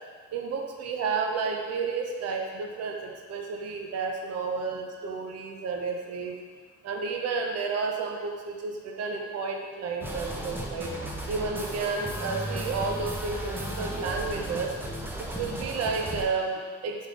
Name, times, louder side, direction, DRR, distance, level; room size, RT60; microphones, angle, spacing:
voice 1, 0.3-6.3 6.8-11.0 11.3-14.7 15.2-17.1, right 4 dB, 55° right, 2 dB, 0.6 m, -31 dB
sound 1, 10.0-16.2, right 1 dB, 5° right, 0.5 m, -35 dB
3.6 x 3.4 x 3.7 m, 1.5 s
cardioid pair, 90°, 30 cm